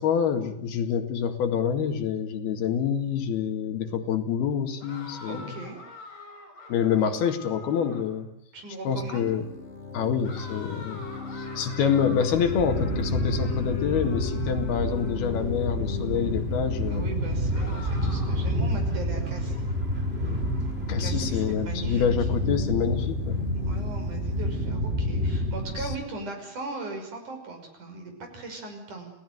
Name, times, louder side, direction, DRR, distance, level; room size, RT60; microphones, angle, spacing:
voice 1, 0.0-5.5 6.7-8.3 8.9-9.5 9.9-11.1 11.3-17.1 20.9-23.4 25.8-25.9, left 7 dB, 75° left, 7 dB, 4.0 m, -27 dB
sound 1, 4.8-8.2 10.2-15.5 17.5-18.5, left 2 dB, 55° left, 8.3 m, -45 dB
voice 2, 5.3-5.8 7.0-7.1 8.5-9.3 16.9-19.7 21.0-22.1 23.7-29.1, right 3 dB, 50° right, 4 dB, 7.0 m, -38 dB
sound 2, 8.9-26.5, left 6 dB, 25° left, 1.7 m, -37 dB
sound 3, 12.3-26.0, equal, 15° right, 4.5 m, -29 dB
28.5 x 18.0 x 9.4 m, 0.75 s
omnidirectional pair, 4.5 m